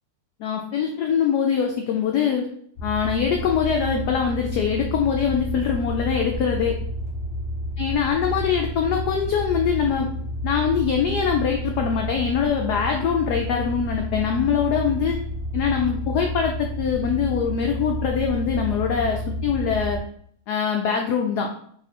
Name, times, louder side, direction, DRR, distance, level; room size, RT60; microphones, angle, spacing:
voice 1, 0.4-2.5 2.8-6.8 7.8-10.1 10.4-15.2 15.5-20.0 20.5-21.5, left 7 dB, 90° left, 2 dB, 0.8 m, -23 dB
sound 1, 2.8-20.0, equal, 45° left, 0.7 m, -30 dB
3.6 x 2.6 x 4.2 m, 0.62 s
omnidirectional pair, 2.3 m